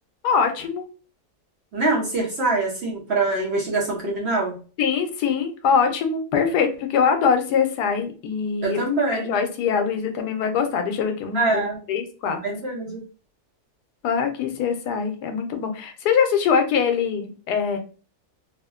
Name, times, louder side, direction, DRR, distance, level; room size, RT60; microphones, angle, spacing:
voice 1, 0.2-0.8 4.8-8.8 9.1-12.4 12.9-13.0 14.0-17.8, left 6 dB, 90° left, 5 dB, 1.2 m, -23 dB
voice 2, 1.7-4.5 8.6-9.3 11.3-11.8 12.4-13.0, right 2 dB, 55° right, -2 dB, 0.9 m, -24 dB
3.3 x 2.1 x 2.3 m, 0.36 s
omnidirectional pair, 1.7 m